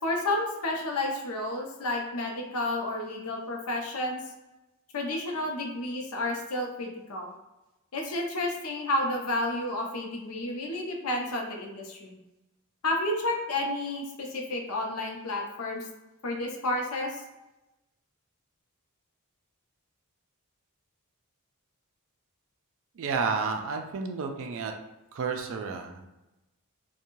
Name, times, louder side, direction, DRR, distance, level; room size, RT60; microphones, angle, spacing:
voice 1, 0.0-4.2 4.9-7.3 7.9-12.2 12.8-15.8 16.2-17.2, left 1 dB, 70° left, 1 dB, 0.6 m, -31 dB
voice 2, 22.9-24.7 25.1-26.1, right 5 dB, 60° right, 4 dB, 0.4 m, -31 dB
2.6 x 2.2 x 2.9 m, 0.99 s
head